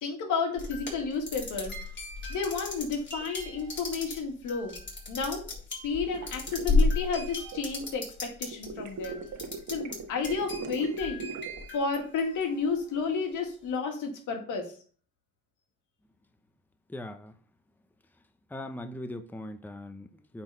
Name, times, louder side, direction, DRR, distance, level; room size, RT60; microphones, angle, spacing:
voice 1, 0.0-1.7 2.3-4.7 5.1-5.4 5.8-9.2 9.7-11.3 11.7-14.7, left 4 dB, 85° left, 2.0 m, -31 dB
sound 1, 0.6-8.7 9.0-10.0 10.2-12.6, left 3 dB, 40° left, 3.7 m, -33 dB
sound 2, 6.1-7.9 8.5-11.6, right 5 dB, 70° right, 1.4 m, -39 dB
voice 2, 16.9-17.3 18.5-20.4, left 1 dB, 5° left, 0.7 m, -40 dB
8.7 x 4.1 x 5.5 m
cardioid pair, 90°, 30 cm